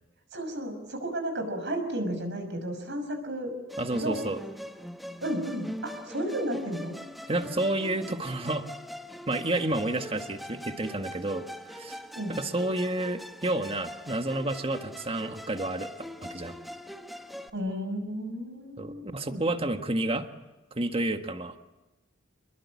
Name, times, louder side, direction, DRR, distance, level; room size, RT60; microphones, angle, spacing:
voice 1, 0.3-3.5 4.0-4.2 5.2-6.9 12.2-12.3 17.5-19.4, right 1 dB, 60° right, 6 dB, 6.1 m, -33 dB
Musical instrument, 3.7-17.5, equal, ahead, 1.1 m, -42 dB
voice 2, 3.8-4.4 7.3-8.7 9.3-12.0 12.3-16.6 18.8-20.3 20.7-21.6, right 1 dB, 30° right, 7 dB, 1.6 m, -30 dB
27.5 x 21.5 x 8.5 m, 1.1 s
head